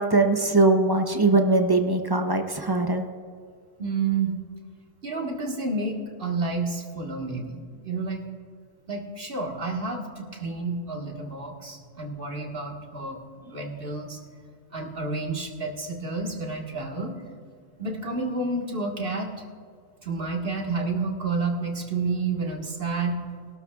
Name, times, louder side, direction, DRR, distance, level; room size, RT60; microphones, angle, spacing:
voice 1, 0.0-3.0, right 2 dB, 30° right, 5 dB, 0.4 m, -21 dB
voice 2, 3.8-4.3 5.0-8.2 8.9-14.2 14.7-17.1 17.8-19.3 20.0-23.2, right 3 dB, 45° right, 0 dB, 1.7 m, -30 dB
21.5 x 12.5 x 2.3 m, 2.1 s
omnidirectional pair, 1.3 m